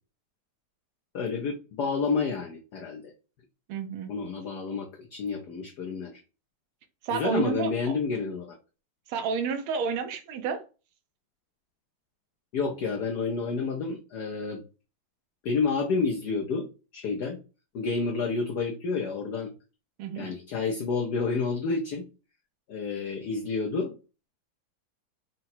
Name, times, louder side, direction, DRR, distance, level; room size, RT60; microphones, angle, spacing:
voice 1, 1.1-3.1 4.1-6.2 7.1-8.6 12.5-14.6 15.4-17.4 17.7-19.5 20.2-22.1 22.7-24.0, left 4 dB, 65° left, 1.1 m, -29 dB
voice 2, 3.7-4.1 7.0-7.9 9.1-10.6 20.0-20.3, right 6 dB, 80° right, 1.5 m, -30 dB
4.8 x 2.2 x 4.2 m
omnidirectional pair, 2.3 m